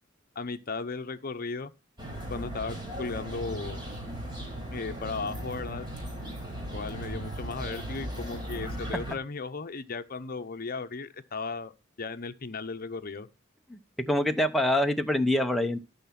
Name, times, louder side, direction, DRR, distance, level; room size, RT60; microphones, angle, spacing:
voice 1, 0.4-1.7 2.3-3.8 4.7-5.9 6.7-11.7 12.0-13.3, left 4 dB, 50° left, 0.8 m, -36 dB
sound 1, 2.0-9.1, right 1 dB, 25° right, 4.6 m, -37 dB
voice 2, 13.7-15.8, left 1 dB, ahead, 0.8 m, -25 dB
13.0 x 5.8 x 5.9 m
head